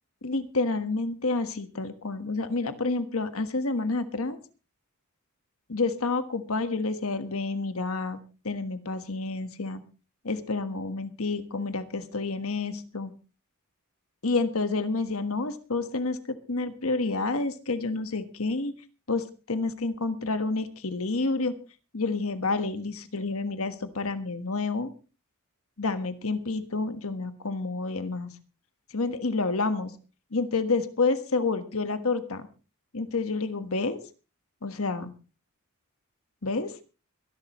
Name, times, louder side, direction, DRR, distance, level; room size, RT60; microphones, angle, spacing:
voice 1, 0.2-4.4 5.7-9.8 10.2-13.1 14.2-18.7 19.1-21.5 21.9-24.9 25.8-28.3 28.9-29.9 30.3-32.5 32.9-34.0 34.6-35.1 36.4-36.7, left 3 dB, 65° left, 9 dB, 1.4 m, -29 dB
24.5 x 11.5 x 3.1 m, 0.33 s
head